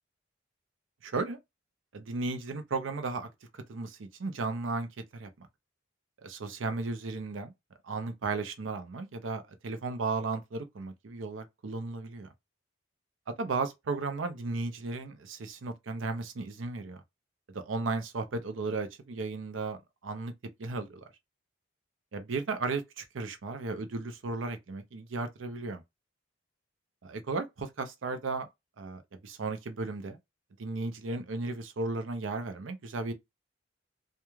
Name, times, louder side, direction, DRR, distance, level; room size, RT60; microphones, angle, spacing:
voice 1, 1.0-1.4 1.9-3.3 3.5-5.5 6.2-7.5 7.8-12.3 13.4-17.0 17.5-19.8 20.0-20.3 20.6-21.0 22.1-25.8 27.0-28.5 28.8-30.2 30.6-33.1, right 3 dB, 90° right, 0.5 m, -35 dB
2.3 x 2.3 x 3.0 m
head